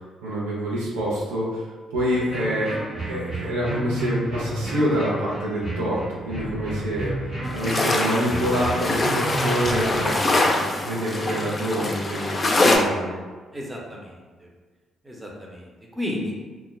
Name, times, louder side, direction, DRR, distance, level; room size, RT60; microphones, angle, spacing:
voice 1, 0.2-1.7 1.9-2.8 3.1-7.1 7.5-13.1, equal, 90° right, -7 dB, 0.6 m, -26 dB
sound 1, 2.1-10.2, right 2 dB, 55° right, 1.2 m, -31 dB
sound 2, 7.4-12.8, left 2 dB, 35° left, 0.4 m, -24 dB
voice 2, 13.5-14.5 15.0-16.3, left 1 dB, 15° right, -2 dB, 0.7 m, -33 dB
2.2 x 2.1 x 3.2 m, 1.4 s
hypercardioid pair, 45°, 0 cm